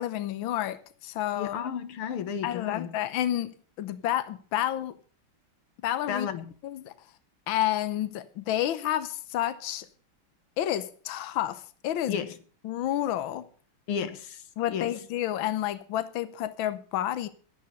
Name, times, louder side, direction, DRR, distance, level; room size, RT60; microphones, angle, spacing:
voice 1, 0.0-1.6 2.4-5.0 5.8-6.3 6.6-6.9 7.5-9.9 10.6-12.2 12.6-13.5 14.6-17.3, left 12 dB, 70° left, 1.6 m, -30 dB
voice 2, 1.4-2.9 6.1-6.4 12.1-12.4 13.9-14.9, left 8 dB, 90° left, 2.1 m, -33 dB
11.5 x 11.5 x 6.7 m
omnidirectional pair, 2.3 m